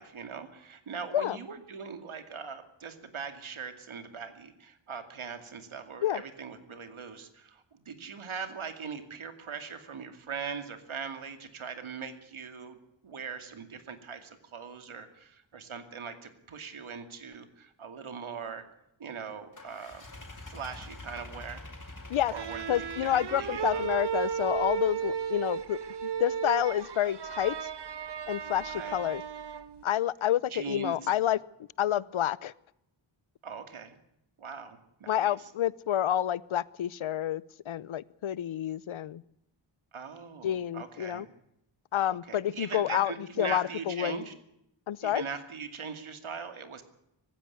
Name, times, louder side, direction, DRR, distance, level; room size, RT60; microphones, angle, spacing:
voice 1, 0.0-12.8 13.0-18.7 19.0-20.1 20.4-21.6 22.3-22.6 23.1-23.9 28.6-29.0 30.5-31.0 33.4-34.0 34.4-35.5 39.9-41.3 42.1-44.3 45.0-46.8, right 6 dB, 80° right, 8 dB, 2.5 m, -41 dB
sound 1, 19.5-25.1, left 2 dB, 40° left, 5.2 m, -47 dB
sound 2, 22.3-29.8, right 8 dB, 55° right, 1.3 m, -34 dB
voice 2, 22.7-27.7 28.3-29.2 29.8-31.4 31.8-32.5 35.1-39.2 40.4-41.3 41.9-44.2 44.9-45.2, left 11 dB, 75° left, 22 dB, 0.7 m, -29 dB
19.5 x 15.5 x 9.6 m, 0.80 s
wide cardioid pair, 70°, 48 cm